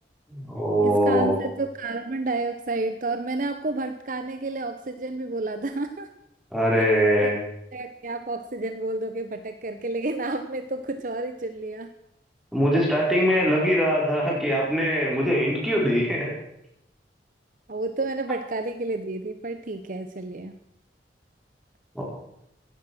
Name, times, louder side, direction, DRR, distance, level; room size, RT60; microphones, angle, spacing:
voice 1, 0.3-1.4 6.5-7.3 12.5-16.3 21.9-22.0, equal, ahead, -4 dB, 4.9 m, -22 dB
voice 2, 0.8-6.1 7.2-7.3 7.7-11.9 17.7-20.5, right 2 dB, 45° right, 8 dB, 0.8 m, -30 dB
16.0 x 10.0 x 6.2 m, 0.80 s
head